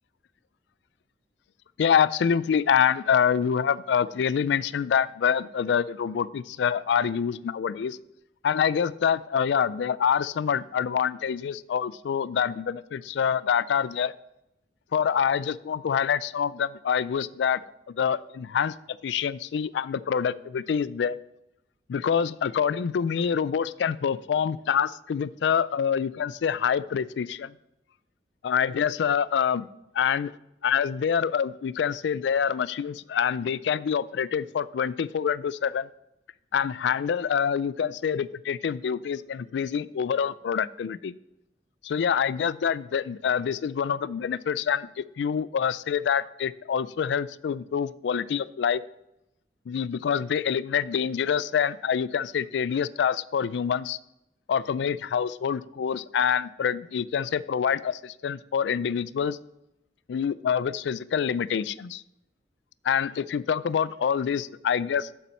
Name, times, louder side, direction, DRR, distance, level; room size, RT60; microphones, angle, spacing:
voice 1, 1.8-8.0 8.4-14.1 14.9-17.6 17.9-18.7 19.0-21.2 21.9-27.5 28.4-29.7 29.9-30.3 30.6-35.9 36.5-41.2 41.8-48.8 49.7-54.0 54.5-59.4 60.1-62.0 62.8-65.1, left 7 dB, 80° left, 18 dB, 0.3 m, -26 dB
7.2 x 7.2 x 5.5 m, 0.87 s
head